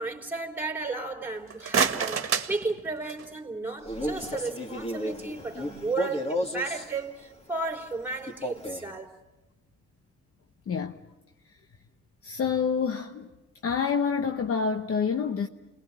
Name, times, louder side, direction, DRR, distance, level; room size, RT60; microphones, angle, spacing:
voice 1, 0.0-9.1, right 3 dB, 5° right, 3.6 m, -34 dB
sound 1, 1.3-3.4, right 6 dB, 45° right, 1.9 m, -29 dB
Male speech man speaking, 3.8-6.9 8.3-8.9, equal, 20° left, 2.4 m, -33 dB
voice 2, 10.7-11.0 12.2-13.3 13.6-15.5, left 6 dB, 50° left, 1.0 m, -27 dB
29.5 x 20.5 x 7.5 m
cardioid pair, 90°, 30 cm